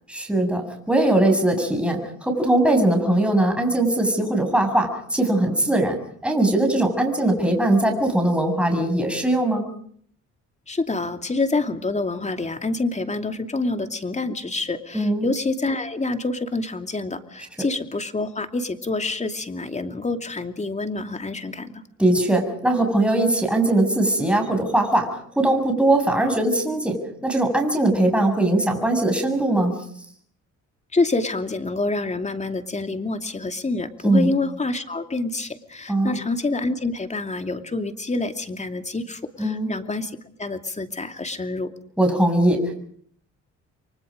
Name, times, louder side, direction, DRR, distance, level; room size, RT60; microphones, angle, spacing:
voice 1, 0.1-6.0 6.2-9.7 14.9-15.3 22.0-29.9 34.0-34.3 35.9-36.2 39.4-39.7 42.0-42.7, right 1 dB, 5° right, 3 dB, 7.1 m, -20 dB
voice 2, 10.7-21.8 30.9-41.7, left 3 dB, 25° left, 7 dB, 2.6 m, -27 dB
30.0 x 24.0 x 5.2 m, 0.62 s
cardioid pair, 90°, 30 cm